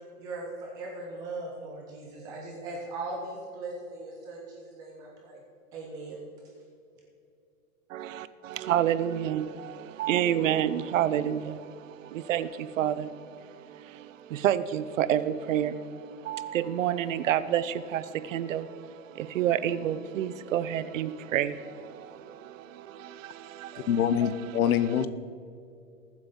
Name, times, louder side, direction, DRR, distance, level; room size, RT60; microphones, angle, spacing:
voice 1, 0.2-5.4 5.7-6.2, right 2 dB, 10° right, 0.4 m, -39 dB
voice 2, 7.9-23.9 24.2-24.3, right 10 dB, 60° right, 0.7 m, -29 dB
voice 3, 23.8-25.1, left 9 dB, 70° left, 0.9 m, -25 dB
20.0 x 7.7 x 3.8 m
hypercardioid pair, 150°, 44 cm